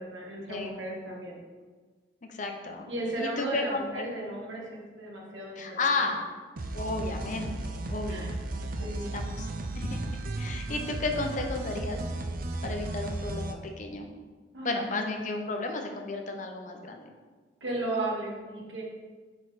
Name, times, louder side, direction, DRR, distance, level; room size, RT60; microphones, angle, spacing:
voice 1, 0.0-1.4 2.9-6.0 8.1-8.3 8.8-9.1 14.5-14.9 17.6-18.8, right 2 dB, 90° right, -2 dB, 1.5 m, -35 dB
voice 2, 2.3-2.9 3.2-4.0 5.6-6.2 6.7-8.3 9.1-9.5 9.7-12.0 12.6-14.1 14.6-17.1, left 3 dB, 45° left, 3 dB, 0.7 m, -33 dB
sound 1, 6.6-13.5, right 2 dB, 50° right, 0.5 m, -35 dB
6.4 x 4.5 x 4.1 m, 1.4 s
head